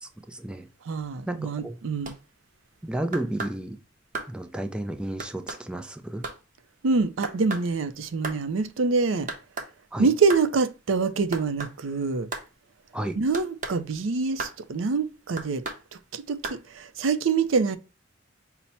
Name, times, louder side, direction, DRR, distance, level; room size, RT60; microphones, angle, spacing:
voice 1, 0.0-0.7 1.3-1.8 2.8-3.8 4.3-6.3 9.9-10.1 12.9-13.2, right 1 dB, 5° right, 0.3 m, -32 dB
voice 2, 0.9-2.1 6.8-9.3 10.0-12.3 13.2-15.6 15.9-17.8, right 4 dB, 90° right, 0.5 m, -25 dB
sound 1, 2.0-2.2 3.1-3.6 4.1-4.3 5.2-5.6 6.2-6.4 7.2-7.7 8.2-8.4 9.3-9.7 10.3-10.5 11.3-11.8 12.3-12.5 13.3-13.8 14.4-14.6 15.4-15.8 16.4-16.6, right 3 dB, 45° right, 0.7 m, -34 dB
5.5 x 2.1 x 4.2 m
head